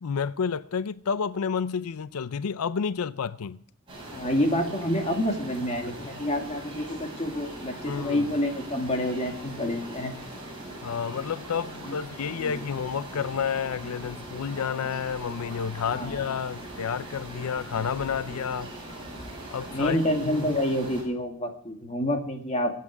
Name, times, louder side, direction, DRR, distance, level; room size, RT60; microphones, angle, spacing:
voice 1, 0.0-3.6 7.8-8.3 10.8-18.7 19.5-20.5, left 6 dB, 90° left, 0.5 m, -30 dB
sound 1, 3.9-21.0, right 1 dB, 25° right, 7.8 m, -41 dB
voice 2, 4.1-10.1 11.9-12.0 12.4-12.7 15.9-16.2 19.7-22.7, left 1 dB, 30° left, 2.5 m, -28 dB
23.5 x 8.5 x 4.8 m
head